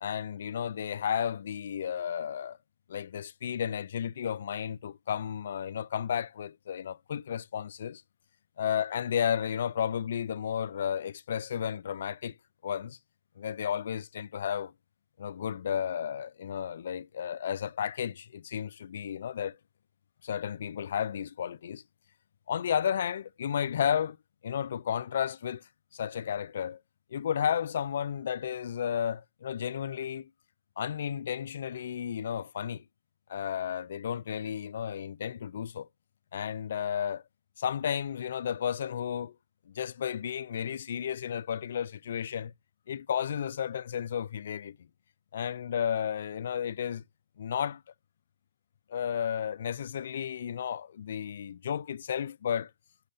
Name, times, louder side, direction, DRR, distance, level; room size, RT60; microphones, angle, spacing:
voice 1, 0.0-2.6 2.9-8.0 8.6-12.4 12.6-13.0 13.4-14.7 15.2-19.6 20.2-21.8 22.5-24.2 24.4-26.8 27.1-30.3 30.8-32.9 33.3-35.9 36.3-37.2 37.6-39.4 39.7-42.5 42.9-44.8 45.3-47.0 47.4-47.8 48.9-52.7, left 8 dB, 60° left, 0.3 m, -33 dB
6.4 x 6.3 x 2.5 m
hypercardioid pair, 145°, 0 cm